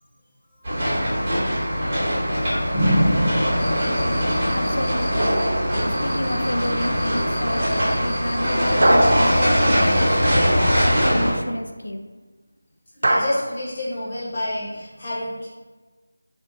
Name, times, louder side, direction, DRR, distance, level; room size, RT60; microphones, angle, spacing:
sound 1, 0.6-11.3, equal, 30° right, 1.0 m, -22 dB
voice 1, 2.7-3.9 13.0-15.5, equal, 30° left, -8 dB, 0.9 m, -25 dB
Cricket, 3.6-10.1, equal, 10° left, 0.5 m, -40 dB
voice 2, 4.5-5.4 5.8-10.3 10.8-12.0, left 1 dB, 80° left, 4 dB, 0.3 m, -29 dB
sound 2, 5.2-6.4 8.8-10.5 13.0-13.2, right 1 dB, 70° right, 0.4 m, -22 dB
2.8 x 2.0 x 2.7 m, 1.3 s
figure-of-eight pair, 170°, 0 cm